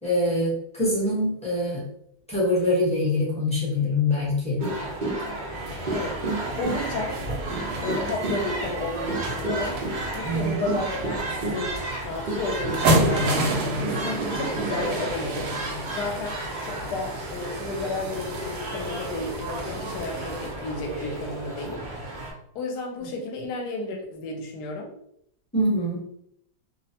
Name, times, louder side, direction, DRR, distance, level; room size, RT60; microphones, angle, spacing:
voice 1, 0.0-1.8 2.3-4.6 10.2-10.6 25.5-26.0, left 1 dB, 5° left, -7 dB, 0.6 m, -24 dB
sound 1, 4.6-22.3, right 2 dB, 55° right, 0.5 m, -32 dB
sound 2, 5.5-20.5, right 1 dB, 85° right, 1.2 m, -31 dB
voice 2, 6.6-7.2 7.8-9.8 10.1-11.8 12.0-15.5 15.9-21.9 22.5-24.9, left 3 dB, 75° left, 1 dB, 1.1 m, -32 dB
2.8 x 2.1 x 2.7 m, 0.71 s
omnidirectional pair, 1.8 m